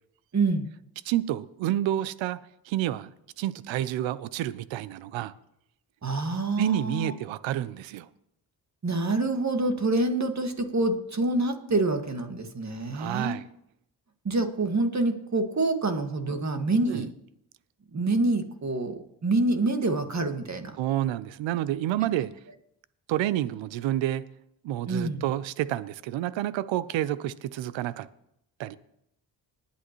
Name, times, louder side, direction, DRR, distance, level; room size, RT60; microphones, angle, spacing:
voice 1, 0.3-0.7 6.0-7.1 8.8-13.4 14.2-17.1 17.9-20.8 24.9-25.2, right 2 dB, 40° right, 1.8 m, -26 dB
voice 2, 1.1-2.4 2.7-3.1 3.4-5.3 6.6-8.1 12.9-13.5 16.9-17.0 20.8-22.3 23.1-24.3 24.6-28.1 28.6-28.8, right 13 dB, 90° right, 0.6 m, -29 dB
20.0 x 8.6 x 3.0 m
supercardioid pair, 55°, 44 cm